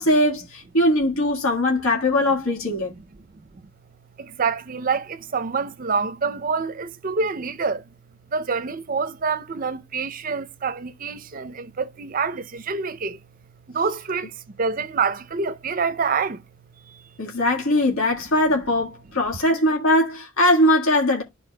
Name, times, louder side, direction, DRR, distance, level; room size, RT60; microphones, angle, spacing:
voice 1, 0.0-2.9 17.2-21.2, left 1 dB, 85° left, 1.6 m, -20 dB
voice 2, 4.2-7.8 8.3-13.2 13.7-16.4 16.9-17.0, right 5 dB, 40° right, 0.5 m, -26 dB
12.5 x 4.3 x 2.2 m
head